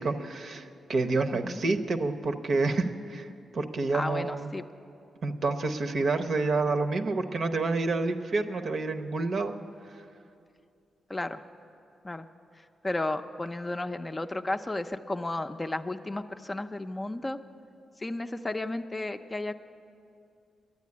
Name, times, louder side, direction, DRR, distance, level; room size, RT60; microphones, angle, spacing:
voice 1, 0.0-4.5 5.2-9.5, right 3 dB, 60° right, 6 dB, 0.8 m, -28 dB
voice 2, 3.9-4.6 11.1-11.4 12.0-12.3 12.8-17.4 18.0-19.5, left 2 dB, 20° left, 7 dB, 0.5 m, -33 dB
10.5 x 9.2 x 9.6 m, 2.5 s
cardioid pair, 80°, 0 cm